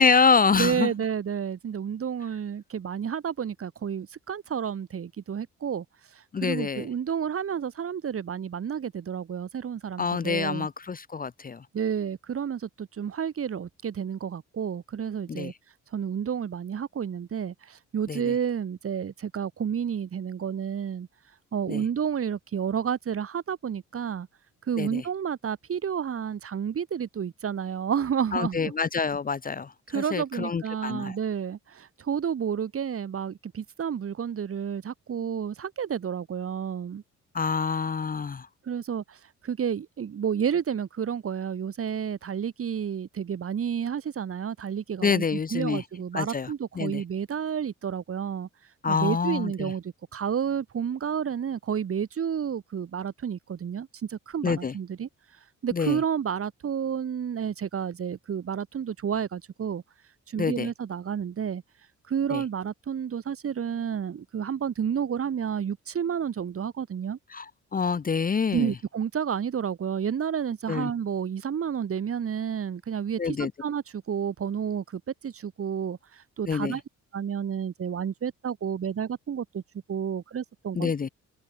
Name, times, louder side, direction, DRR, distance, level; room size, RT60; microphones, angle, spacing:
voice 1, 0.0-0.9 6.3-6.9 10.0-11.6 15.3-15.5 18.1-18.2 21.7-21.8 24.8-25.0 28.3-31.2 37.3-38.5 45.0-45.8 46.1-46.5 46.8-47.0 48.8-49.7 54.4-54.7 55.7-56.0 60.4-60.7 62.3-62.4 67.3-67.4 67.7-68.7 70.7-70.9 73.2-73.5 76.5-76.8 80.8-81.1, left 5 dB, 30° left, 0.8 m, -26 dB
voice 2, 0.5-5.8 6.4-10.7 11.7-15.5 15.9-21.1 21.5-24.3 24.7-28.6 29.9-37.0 38.7-39.0 39.4-48.5 48.9-55.1 55.6-59.8 60.3-61.6 62.1-67.2 68.5-76.0 76.4-76.8 77.1-79.6 79.9-80.9, right 8 dB, 50° right, 2.4 m, -30 dB
open air
cardioid pair, 90°, 30 cm